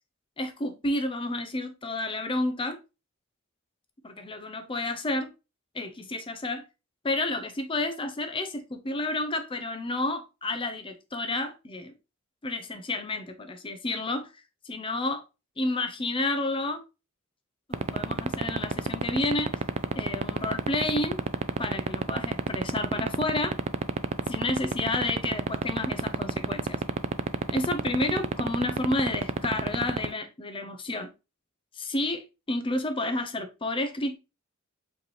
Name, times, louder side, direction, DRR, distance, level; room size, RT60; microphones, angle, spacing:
voice 1, 0.4-2.8 4.0-5.3 5.7-6.6 7.0-11.9 12.4-14.3 14.6-15.2 15.6-16.8 17.7-19.6 19.9-21.2 21.6-23.6 24.3-26.8 27.5-31.1 31.8-34.2, left 2 dB, 25° left, 0.6 m, -30 dB
sound 1, 17.7-30.0, right 5 dB, 30° right, 0.3 m, -25 dB
4.9 x 3.3 x 3.0 m
head